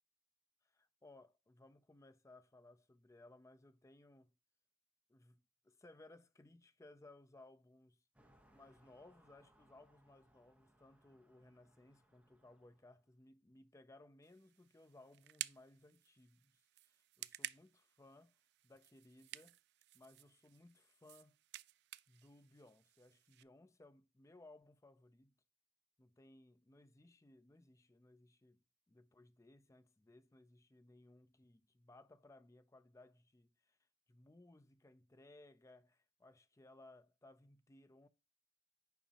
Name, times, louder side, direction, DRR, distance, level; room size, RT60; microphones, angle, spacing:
voice 1, 0.6-4.3 5.1-8.0 8.5-18.4 18.6-19.6 19.9-21.4 22.1-25.4 26.0-28.6 28.9-33.8 34.1-38.1, left 2 dB, 15° left, 0.4 m, -63 dB
sound 1, 8.1-13.0, right 1 dB, 5° right, 1.1 m, -71 dB
sound 2, 14.2-23.4, right 15 dB, 60° right, 0.3 m, -53 dB
7.0 x 5.0 x 2.8 m
head